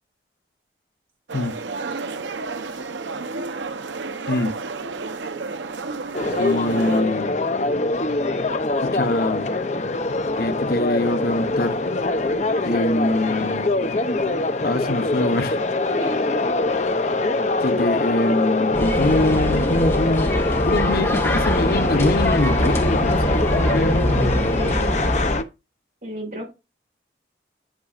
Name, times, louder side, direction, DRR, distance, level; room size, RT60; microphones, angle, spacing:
sound 1, 1.3-7.0, right 4 dB, 85° right, 0.8 m, -31 dB
sound 2, 6.1-25.4, left 2 dB, 40° left, 0.6 m, -23 dB
voice 1, 6.4-7.3 8.8-9.5 10.4-11.8 12.6-13.7 14.6-15.6 17.6-20.3 20.6-24.1, left 1 dB, 55° left, 1.0 m, -24 dB
voice 2, 16.0-16.4 24.5-24.9 26.0-26.5, right 1 dB, 50° right, 5.7 m, -33 dB
sound 3, 18.7-25.4, equal, 15° left, 1.8 m, -23 dB
11.5 x 6.8 x 2.5 m
head